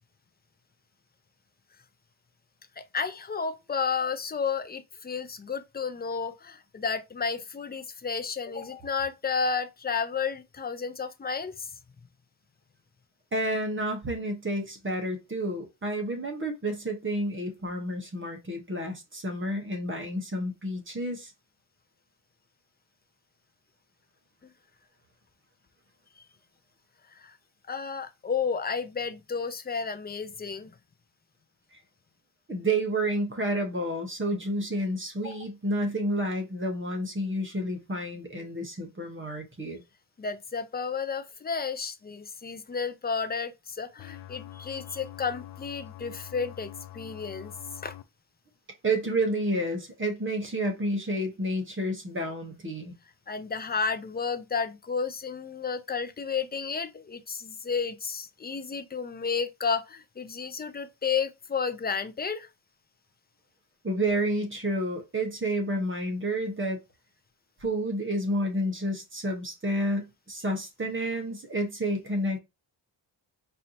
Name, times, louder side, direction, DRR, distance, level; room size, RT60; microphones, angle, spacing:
voice 1, 2.8-11.7 24.4-24.5 27.1-27.4 27.7-30.7 35.2-35.4 40.2-47.5 47.8-47.9 53.3-62.5, left 5 dB, 25° left, 0.5 m, -32 dB
voice 2, 13.3-21.3 32.5-39.8 48.8-52.9 63.8-66.8 67.6-72.4, right 1 dB, 30° right, 1.1 m, -30 dB
sound 1, 44.0-48.0, left 13 dB, 85° left, 0.5 m, -45 dB
4.3 x 2.7 x 2.8 m
wide cardioid pair, 105°, 43 cm